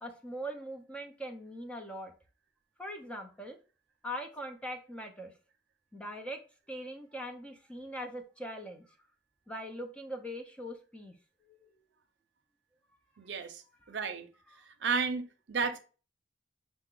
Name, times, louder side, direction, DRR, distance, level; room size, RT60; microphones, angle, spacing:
voice 1, 0.0-2.1 2.8-3.6 4.0-5.3 5.9-6.4 6.7-8.9 9.5-11.1 11.5-11.7 14.5-14.6, equal, 5° left, 0.5 m, -41 dB
voice 2, 13.2-13.6 13.9-14.3 14.8-15.8, right 5 dB, 75° right, 0.6 m, -32 dB
5.6 x 2.1 x 3.7 m
head